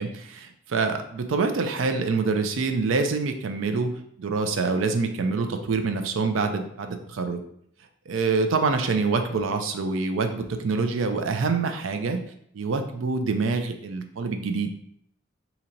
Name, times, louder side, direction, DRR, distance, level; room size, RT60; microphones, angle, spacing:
voice 1, 0.0-3.9 4.2-7.4 8.1-12.2 12.5-14.7, right 4 dB, 80° right, 6 dB, 0.4 m, -26 dB
2.8 x 2.6 x 4.3 m, 0.69 s
head